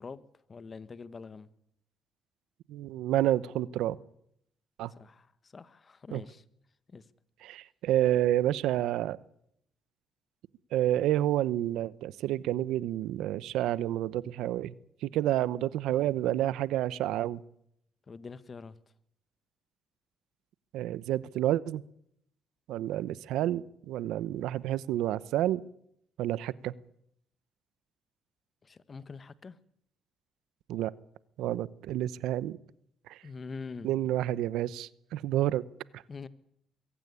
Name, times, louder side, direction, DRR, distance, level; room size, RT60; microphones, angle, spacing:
voice 1, 0.0-1.5 5.0-6.4 6.9-7.0 18.1-18.8 28.6-29.6 33.2-33.9 36.1-36.3, left 4 dB, 35° left, 1.4 m, -44 dB
voice 2, 2.7-4.0 4.8-4.9 6.1-6.2 7.4-9.2 10.7-14.7 15.0-17.4 20.7-21.8 22.7-25.6 26.2-26.7 30.7-30.9 31.4-32.6 33.1-33.2 33.8-35.6 35.9-36.0, right 13 dB, 90° right, 0.8 m, -29 dB
23.0 x 16.5 x 9.8 m
cardioid pair, 90°, 0 cm